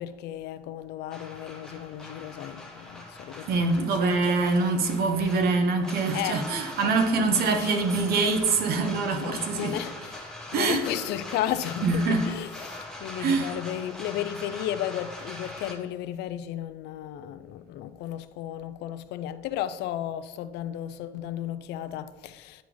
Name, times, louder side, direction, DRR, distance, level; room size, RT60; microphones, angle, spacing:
voice 1, 0.0-4.4 6.1-6.5 6.8-7.2 7.6-7.7 9.1-22.6, left 11 dB, 80° left, 0.4 m, -34 dB
sound 1, 1.1-15.7, left 1 dB, 5° left, 1.2 m, -42 dB
voice 2, 3.5-9.7 10.5-10.9 11.8-12.3 13.2-13.5, right 3 dB, 70° right, 0.9 m, -24 dB
9.7 x 3.9 x 3.1 m
cardioid pair, 110°, 17 cm